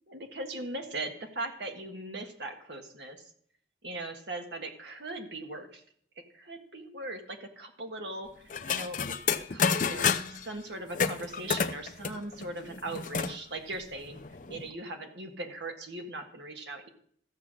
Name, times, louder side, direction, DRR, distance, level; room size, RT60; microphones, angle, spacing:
voice 1, 0.1-3.3 3.8-5.8 6.3-9.0 9.3-14.2 14.5-16.9, right 2 dB, 70° right, 4 dB, 1.7 m, -39 dB
sound 1, 8.5-10.4 10.9-13.3 13.7-13.8 14.0-14.7, left 6 dB, 45° left, 0.6 m, -30 dB
14.5 x 7.0 x 6.3 m, 0.64 s
head